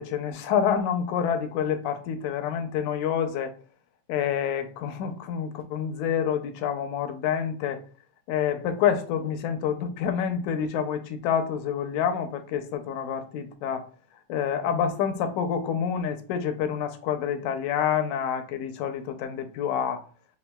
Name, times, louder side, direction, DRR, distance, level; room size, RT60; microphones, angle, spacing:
voice 1, 0.0-3.5 4.1-7.8 8.3-13.9 14.3-20.0, left 8 dB, 75° left, 1.9 m, -27 dB
6.9 x 3.3 x 2.2 m
omnidirectional pair, 3.8 m